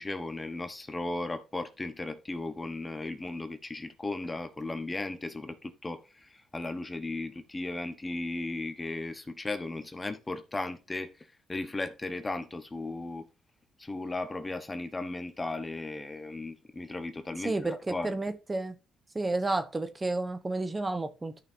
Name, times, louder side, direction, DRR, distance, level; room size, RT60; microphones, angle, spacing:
voice 1, 0.0-11.1 11.5-13.3 13.8-18.1, left 2 dB, 20° left, 1.0 m, -36 dB
voice 2, 17.4-18.8 19.1-21.4, right 2 dB, 20° right, 1.0 m, -31 dB
13.0 x 5.6 x 2.7 m
cardioid pair, 90°, 0 cm